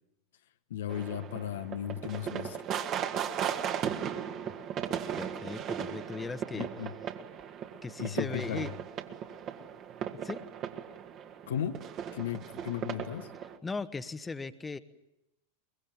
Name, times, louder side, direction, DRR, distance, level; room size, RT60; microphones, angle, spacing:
voice 1, 0.7-2.6 6.5-6.9 8.0-8.7 11.5-11.8 12.1-13.3, left 10 dB, 65° left, 9 dB, 1.2 m, -35 dB
sound 1, 0.9-13.6, right 8 dB, 35° right, 2.1 m, -37 dB
voice 2, 5.1-6.7 7.8-8.7 10.2-10.4 13.6-14.8, left 4 dB, 15° left, 12 dB, 1.3 m, -38 dB
23.5 x 23.0 x 9.4 m, 0.86 s
figure-of-eight pair, 85°, 0 cm